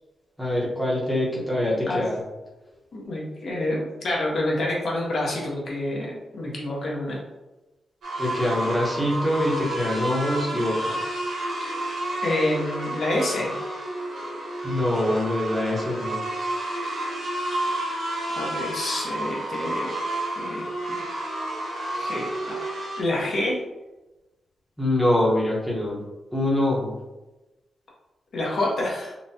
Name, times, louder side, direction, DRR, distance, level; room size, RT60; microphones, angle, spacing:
voice 1, 0.4-2.2 8.2-11.0 14.6-16.2 24.8-26.0 26.3-26.9, left 1 dB, ahead, -5 dB, 0.7 m, -24 dB
voice 2, 2.9-7.2 12.2-13.6 18.3-19.9 20.4-21.0 21.9-23.6 28.3-29.1, left 1 dB, 50° left, -3 dB, 0.8 m, -28 dB
sound 1, 8.0-23.0, right 1 dB, 65° right, 1.0 m, -30 dB
3.9 x 2.1 x 2.7 m, 1.0 s
wide cardioid pair, 160°, 0 cm